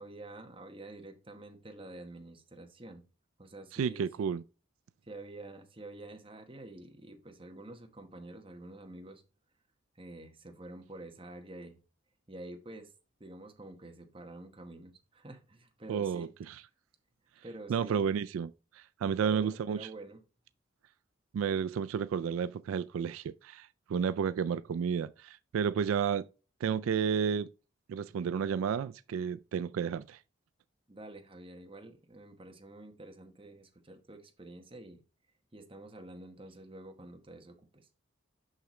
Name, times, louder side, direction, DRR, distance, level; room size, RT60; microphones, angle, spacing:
voice 1, 0.0-3.0 3.4-4.3 5.0-9.2 10.0-11.8 12.3-12.9 13.2-16.3 17.4-18.0 19.0-20.2 30.9-35.0 35.5-37.9, right 2 dB, 25° right, 1.1 m, -48 dB
voice 2, 3.7-4.4 15.9-16.6 17.7-19.9 21.3-26.2 26.6-27.5 27.9-30.2, right 7 dB, 85° right, 0.3 m, -32 dB
6.5 x 5.9 x 3.1 m
head